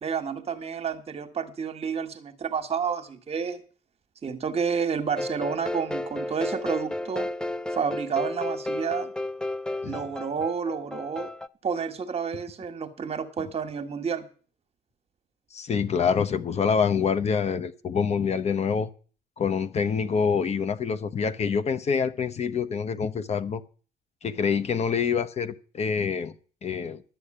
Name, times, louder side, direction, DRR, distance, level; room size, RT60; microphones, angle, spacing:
voice 1, 0.0-3.6 4.2-7.3 7.7-9.1 9.8-11.3 11.6-14.3, right 6 dB, 35° right, 9 dB, 1.5 m, -30 dB
sound 1, 5.2-11.5, left 1 dB, 5° left, 0.5 m, -32 dB
voice 2, 15.5-18.9 19.4-23.6 24.2-26.3 26.6-27.0, left 6 dB, 40° left, 11 dB, 0.9 m, -26 dB
12.0 x 6.7 x 8.8 m, 0.39 s
cardioid pair, 110°, 17 cm